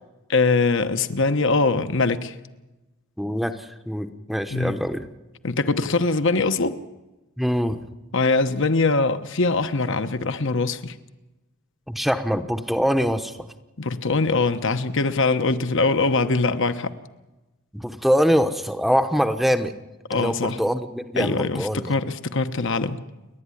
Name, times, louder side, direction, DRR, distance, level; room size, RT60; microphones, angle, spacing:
voice 1, 0.3-2.3 4.5-4.8 5.4-6.8 8.1-10.9 13.8-16.9 20.1-20.6 21.2-23.0, left 3 dB, 55° left, 10 dB, 1.1 m, -22 dB
voice 2, 3.2-5.1 7.4-7.8 11.9-13.4 17.7-19.7 20.1-21.9, equal, ahead, 9 dB, 0.9 m, -23 dB
29.5 x 11.5 x 9.9 m, 1.0 s
head